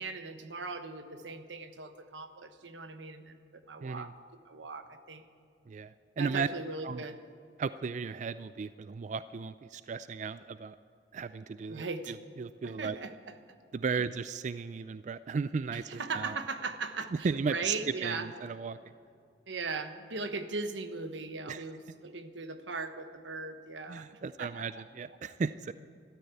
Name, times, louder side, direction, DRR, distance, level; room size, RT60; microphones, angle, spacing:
voice 1, 0.0-5.2 6.2-7.2 11.7-12.2 12.6-13.3 15.7-18.3 19.5-24.1 24.4-24.8, right 4 dB, 90° right, 9 dB, 1.2 m, -39 dB
voice 2, 5.7-6.5 6.8-7.0 7.6-10.8 11.1-13.0 13.7-16.4 17.2-17.8 18.0-18.8 21.5-21.6 23.9-25.7, right 5 dB, 40° right, 14 dB, 0.3 m, -35 dB
13.5 x 12.5 x 8.3 m, 2.5 s
head